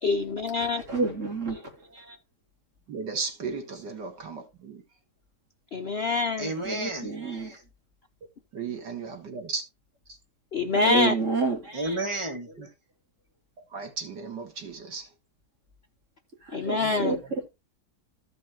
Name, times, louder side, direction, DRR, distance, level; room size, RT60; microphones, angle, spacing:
voice 1, 0.0-0.8 5.7-6.5 10.5-11.1 16.5-17.2, left 3 dB, 50° left, 0.8 m, -26 dB
voice 2, 0.6-1.6 1.9-2.1 3.7-3.8 6.6-7.5 10.7-12.0 16.5-17.2, right 3 dB, 45° right, 3.5 m, -29 dB
voice 3, 2.9-4.8 8.5-9.6 13.7-15.0 16.8-17.0, right 5 dB, 85° right, 2.8 m, -35 dB
voice 4, 6.4-7.1 11.7-12.5, right 2 dB, 15° right, 2.1 m, -31 dB
15.0 x 5.5 x 2.9 m
omnidirectional pair, 1.8 m